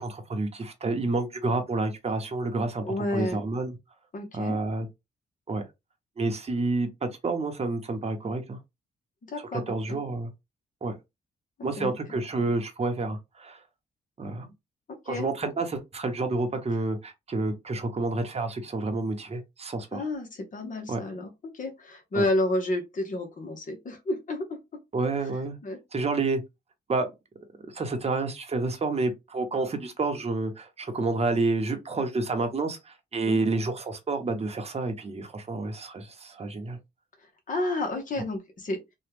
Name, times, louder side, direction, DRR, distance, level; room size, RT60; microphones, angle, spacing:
voice 1, 0.0-2.8 3.1-3.7 4.3-4.9 5.5-5.6 6.2-8.6 9.7-10.3 10.8-10.9 11.6-13.6 14.2-14.5 15.1-20.0 20.9-21.0 22.1-22.2 24.9-25.6 25.9-26.4 26.9-27.1 27.7-36.8, right 3 dB, 35° right, 0.9 m, -29 dB
voice 2, 2.8-3.4 4.1-4.6 9.3-10.0 11.8-11.9 14.9-15.3 19.9-24.6 25.6-25.8 33.3-33.5 37.2-38.8, left 2 dB, 45° left, 1.1 m, -31 dB
3.0 x 2.3 x 3.4 m
cardioid pair, 95°, 19 cm